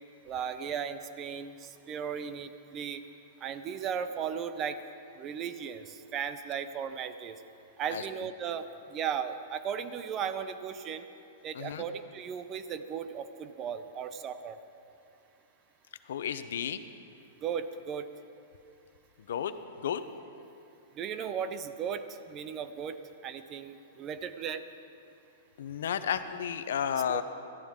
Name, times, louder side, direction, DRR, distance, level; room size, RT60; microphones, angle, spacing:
voice 1, 0.3-3.0 3.4-4.8 5.2-7.4 7.8-8.6 8.9-11.0 11.4-14.6 17.4-18.1 21.0-23.0 23.2-24.6 27.1-27.2, right 7 dB, 25° right, 11 dB, 0.5 m, -36 dB
voice 2, 16.1-16.8 19.3-19.5 19.8-20.0 25.6-27.2, left 8 dB, 75° left, 11 dB, 0.7 m, -32 dB
18.0 x 13.5 x 3.7 m, 2.7 s
supercardioid pair, 165°, 0 cm